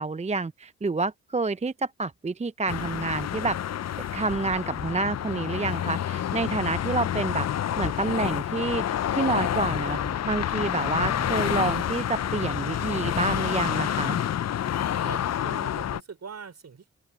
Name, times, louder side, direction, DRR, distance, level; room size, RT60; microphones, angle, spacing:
voice 1, 0.0-3.6 4.1-7.5 7.8-10.0 10.3-14.2, right 3 dB, 20° right, 0.7 m, -28 dB
sound 1, 2.7-16.0, left 10 dB, 50° left, 0.7 m, -28 dB
Thunder / Rain, 8.8-14.3, left 3 dB, 30° left, 6.2 m, -41 dB
voice 2, 15.0-16.9, right 6 dB, 50° right, 5.7 m, -42 dB
hypercardioid pair, 40°, 33 cm